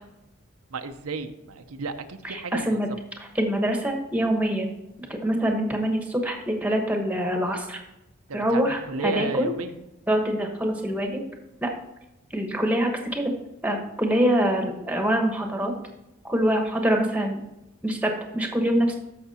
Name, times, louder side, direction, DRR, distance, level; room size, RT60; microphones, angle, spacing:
voice 1, 0.7-2.8 8.3-9.7, right 3 dB, 85° right, 7 dB, 0.7 m, -33 dB
voice 2, 2.2-2.9 3.2-4.7 5.1-7.8 8.3-9.5 10.1-11.2 11.6-11.7 12.3-13.3 13.6-15.7 16.2-17.4 17.8-18.9, equal, 5° right, 3 dB, 1.1 m, -25 dB
14.0 x 5.9 x 2.8 m, 0.93 s
head